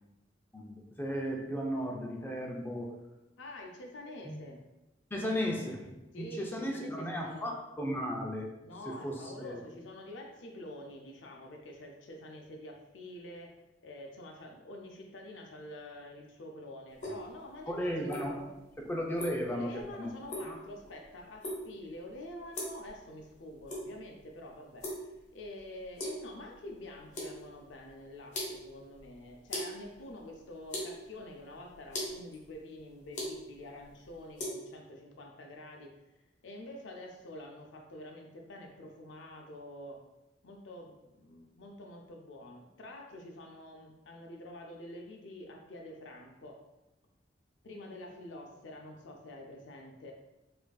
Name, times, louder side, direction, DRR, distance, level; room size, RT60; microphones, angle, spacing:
voice 1, 0.5-2.9 4.2-4.4 5.1-8.5 8.9-9.6 17.7-19.7 20.0-20.1 20.4-20.6, equal, 10° left, 0 dB, 0.5 m, -35 dB
voice 2, 3.4-4.6 6.1-7.5 8.6-13.6 13.8-17.9 19.5-36.0 36.4-40.1 40.4-46.6 47.6-50.1, left 1 dB, 85° left, 1 dB, 0.5 m, -47 dB
sound 1, 16.9-34.5, left 1 dB, 40° left, 1.0 m, -42 dB
4.8 x 2.5 x 2.3 m, 0.95 s
head